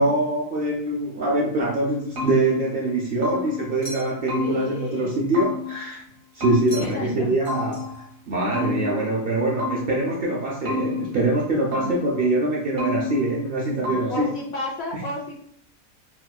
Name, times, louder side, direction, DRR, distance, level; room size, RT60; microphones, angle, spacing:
voice 1, 0.0-6.0 6.3-14.3, right 2 dB, 60° right, -2 dB, 0.6 m, -24 dB
sound 1, 1.6-3.8 4.3-5.9 6.4-8.1 8.5-10.2 10.7-12.3 12.8-13.6 13.8-14.4, left 3 dB, 90° right, 1.5 m, -31 dB
sound 2, 3.8-4.4 6.7-7.2 7.4-8.2, right 1 dB, 85° left, 1.4 m, -41 dB
voice 2, 4.4-5.2 6.8-7.7 11.7-12.1 13.7-15.3, left 2 dB, 65° left, -1 dB, 0.7 m, -33 dB
4.1 x 2.3 x 2.2 m, 0.62 s
omnidirectional pair, 1.4 m